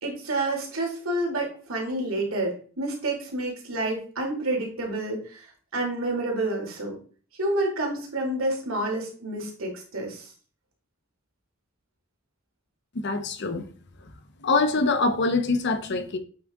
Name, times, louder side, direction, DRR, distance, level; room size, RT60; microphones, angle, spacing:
voice 1, 0.0-5.5 5.7-7.0 7.4-10.3, right 2 dB, 85° right, 2.4 m, -29 dB
voice 2, 12.9-13.6 14.4-16.2, left 3 dB, 55° left, 0.8 m, -24 dB
8.3 x 3.8 x 3.6 m
head